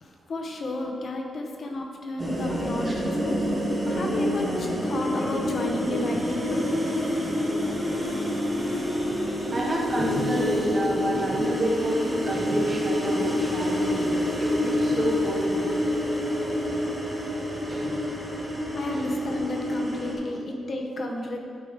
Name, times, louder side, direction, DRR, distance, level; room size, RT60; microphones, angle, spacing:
voice 1, 0.0-3.4 3.9-6.7 18.7-21.4, left 1 dB, 50° left, 1 dB, 0.9 m, -32 dB
sound 1, 2.2-14.5, left 1 dB, 10° left, 1.0 m, -38 dB
sound 2, 2.2-20.1, left 1 dB, 10° right, 1.4 m, -27 dB
voice 2, 9.5-12.0 12.2-15.7 17.7-18.0 18.9-19.1, right 1 dB, 35° right, -3 dB, 1.5 m, -29 dB
9.7 x 5.1 x 3.6 m, 2.5 s
cardioid pair, 100°, 0 cm